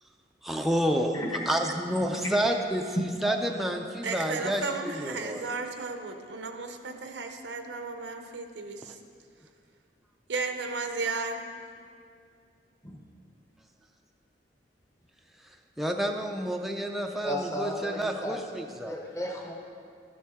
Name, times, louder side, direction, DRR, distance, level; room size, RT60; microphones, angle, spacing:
voice 1, 0.4-1.2 1.5-5.4 15.8-19.0, right 1 dB, ahead, 2 dB, 0.4 m, -29 dB
voice 2, 4.0-9.0 10.3-11.4, right 3 dB, 85° right, 6 dB, 0.7 m, -34 dB
voice 3, 17.2-18.4 18.9-19.5, left 1 dB, 15° left, -1 dB, 0.9 m, -34 dB
12.0 x 7.2 x 3.6 m, 2.3 s
head